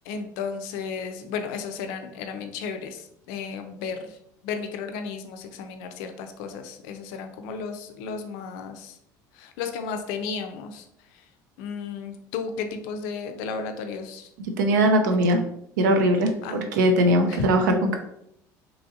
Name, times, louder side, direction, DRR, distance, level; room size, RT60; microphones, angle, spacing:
voice 1, 0.1-4.1 4.4-9.0 9.4-10.8 11.6-14.3 15.1-15.3 16.4-16.6 17.3-17.5, left 5 dB, 75° left, 7 dB, 0.4 m, -34 dB
voice 2, 14.6-15.4 15.8-18.0, right 1 dB, 90° right, 5 dB, 0.4 m, -20 dB
3.0 x 2.6 x 2.4 m, 0.76 s
supercardioid pair, 80°, 10 cm